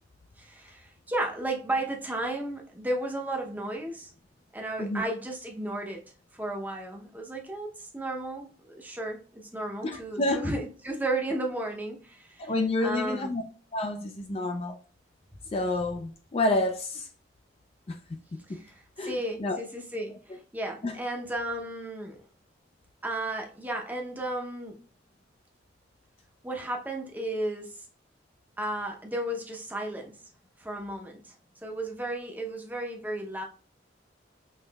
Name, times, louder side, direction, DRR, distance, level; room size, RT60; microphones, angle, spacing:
voice 1, 0.4-4.1 4.5-12.5 12.8-13.4 18.5-22.2 23.0-24.8 26.4-27.8 28.6-30.2 30.6-31.3 31.6-33.4, right 1 dB, 10° right, 0.6 m, -34 dB
voice 2, 9.8-10.4 12.4-13.4 13.7-14.8 15.5-17.1 17.9-18.6 19.0-19.6 20.8-20.9, left 2 dB, 30° left, 0.4 m, -29 dB
5.5 x 3.1 x 2.2 m
head